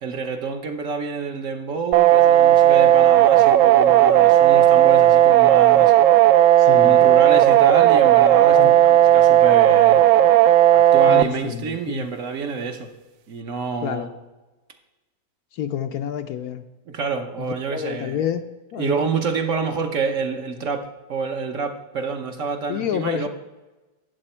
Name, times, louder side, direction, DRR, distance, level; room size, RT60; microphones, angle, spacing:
voice 1, 0.0-5.9 6.7-10.0 10.7-12.9 13.3-14.1 16.9-18.3 18.8-23.3, right 5 dB, 55° right, 5 dB, 1.1 m, -28 dB
sound 1, 1.9-11.2, right 12 dB, 75° right, 0.7 m, -14 dB
voice 2, 6.6-7.1 8.5-8.7 11.1-12.1 13.8-14.1 15.5-16.6 17.4-18.4 18.7-19.1 22.7-23.3, left 9 dB, 70° left, 8 dB, 1.0 m, -28 dB
13.0 x 8.6 x 4.3 m, 1.1 s
omnidirectional pair, 1.8 m